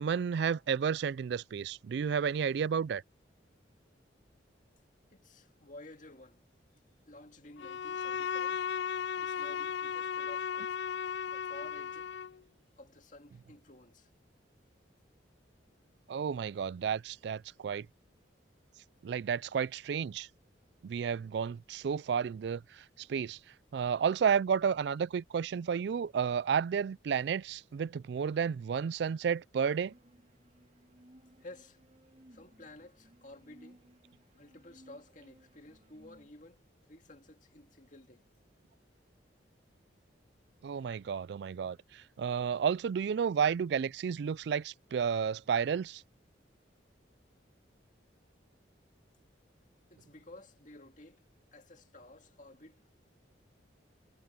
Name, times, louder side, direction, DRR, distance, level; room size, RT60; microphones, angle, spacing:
voice 1, 0.0-3.0 16.1-17.9 19.0-20.3 20.8-23.4 23.7-29.9 40.6-46.0, right 7 dB, 60° right, 0.3 m, -32 dB
voice 2, 5.1-6.5 7.1-8.7 9.2-10.8 11.3-12.1 12.8-14.1 31.4-31.8 32.3-33.9 34.4-38.3 49.9-51.2 51.5-53.0, left 1 dB, 40° left, 2.1 m, -53 dB
Bowed string instrument, 7.6-12.4, left 7 dB, 65° left, 0.4 m, -36 dB
sound 1, 29.8-36.3, right 1 dB, 35° right, 2.6 m, -61 dB
head